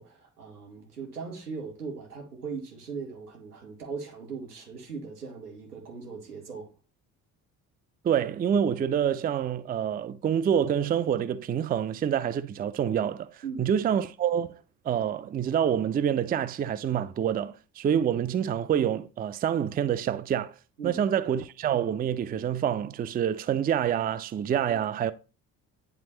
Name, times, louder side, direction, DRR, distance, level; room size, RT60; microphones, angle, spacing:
voice 1, 0.0-6.7 13.4-13.7 20.8-21.0, right 5 dB, 85° right, 1.5 m, -39 dB
voice 2, 8.0-13.3 13.6-14.5 14.9-20.5 20.8-25.1, right 9 dB, 20° right, 0.4 m, -27 dB
10.0 x 3.5 x 3.1 m
figure-of-eight pair, 50°, 45 cm